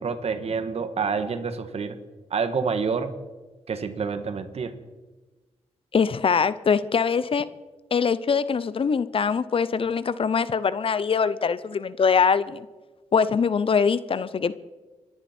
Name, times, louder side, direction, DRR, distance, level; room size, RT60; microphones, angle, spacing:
voice 1, 0.0-2.0 2.3-3.1 3.7-4.7, right 5 dB, 60° right, 9 dB, 1.6 m, -28 dB
voice 2, 5.9-7.5 7.9-12.7 13.1-14.5, left 6 dB, 50° left, 16 dB, 0.7 m, -23 dB
26.0 x 10.5 x 4.4 m, 1.2 s
cardioid pair, 65°, 12 cm